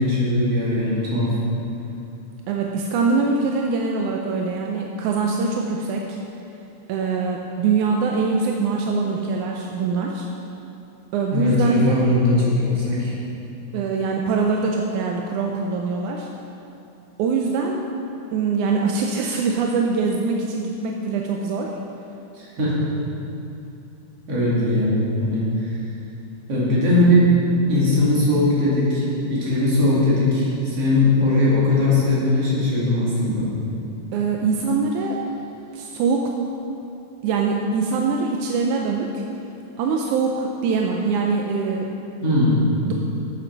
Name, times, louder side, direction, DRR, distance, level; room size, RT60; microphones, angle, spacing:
voice 1, 0.0-1.3 11.3-13.1 22.3-22.7 24.3-25.7 26.5-27.3 27.7-29.0 29.3-33.5 42.2-42.6, left 2 dB, 50° right, -8 dB, 3.3 m, -19 dB
voice 2, 2.5-6.2 6.9-10.3 11.1-12.1 13.7-16.3 17.2-17.8 18.3-21.8 34.1-35.2 35.7-36.3 37.2-39.1 39.8-41.9 42.8-42.9, right 4 dB, 80° right, 0 dB, 1.9 m, -23 dB
8.9 x 7.9 x 5.8 m, 2.8 s
omnidirectional pair, 3.9 m